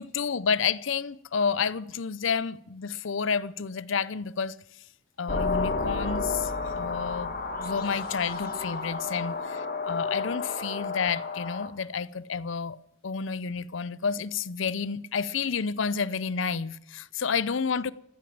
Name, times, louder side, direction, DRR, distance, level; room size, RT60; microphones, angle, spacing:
voice 1, 0.0-4.6 5.2-12.8 13.0-17.9, left 6 dB, 75° left, 0.6 m, -30 dB
sound 1, 5.3-11.7, left 4 dB, 45° left, 2.0 m, -31 dB
15.0 x 9.4 x 8.7 m
head